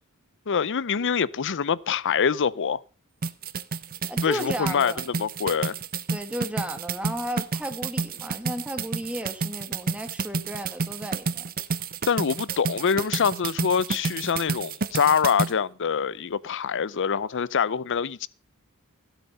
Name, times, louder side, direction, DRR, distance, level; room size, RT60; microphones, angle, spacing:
voice 1, 0.5-2.8 4.2-5.7 12.1-18.3, left 6 dB, 60° left, 0.6 m, -25 dB
sound 1, 3.2-15.5, right 4 dB, 40° right, 0.7 m, -30 dB
voice 2, 4.1-5.1 6.1-11.5, equal, 5° right, 1.7 m, -34 dB
16.5 x 8.3 x 5.4 m
head